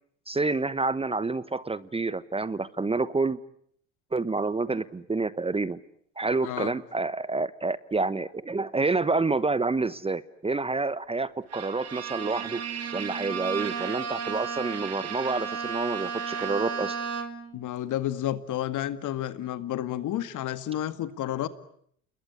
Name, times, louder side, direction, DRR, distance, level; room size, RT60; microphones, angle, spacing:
voice 1, 0.3-3.4 4.1-5.8 6.2-12.6 12.9-17.0, right 3 dB, 15° right, 17 dB, 1.1 m, -28 dB
Bowed string instrument, 11.5-17.6, right 7 dB, 40° right, 3.4 m, -33 dB
voice 2, 17.5-21.5, left 12 dB, 55° left, 13 dB, 2.0 m, -31 dB
29.0 x 21.0 x 9.7 m, 0.69 s
hypercardioid pair, 70°, 37 cm